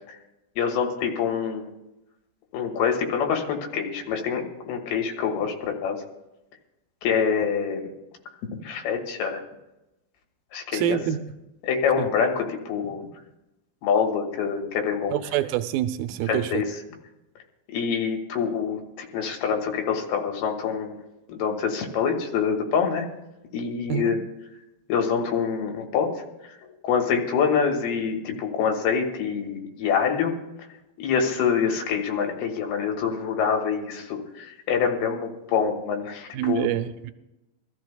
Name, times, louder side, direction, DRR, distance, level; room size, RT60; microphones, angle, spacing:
voice 1, 0.6-1.7 2.5-6.0 7.0-7.9 8.5-9.4 10.5-11.0 11.6-13.1 13.8-15.1 16.3-16.7 17.7-21.0 21.3-23.1 23.5-24.2 24.9-26.6 26.8-30.4 31.0-36.7, left 6 dB, 85° left, 2 dB, 3.3 m, -26 dB
voice 2, 10.7-11.2 12.0-12.1 15.1-16.6 23.9-24.2 36.3-37.1, right 12 dB, 80° right, 11 dB, 2.5 m, -26 dB
24.0 x 13.5 x 2.3 m, 0.96 s
omnidirectional pair, 4.4 m